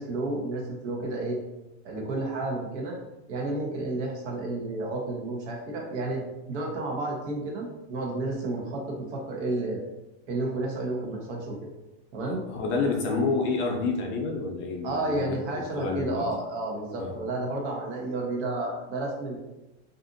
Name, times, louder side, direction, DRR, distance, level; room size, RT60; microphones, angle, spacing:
voice 1, 0.0-1.4 1.8-3.0 3.3-6.2 6.5-9.8 10.3-11.6 12.1-12.4 14.8-19.4, right 2 dB, 75° right, -1 dB, 1.0 m, -31 dB
voice 2, 12.5-16.2 17.0-17.2, left 4 dB, 35° left, 2 dB, 0.5 m, -29 dB
2.6 x 2.5 x 2.5 m, 0.99 s
supercardioid pair, 135°, 34 cm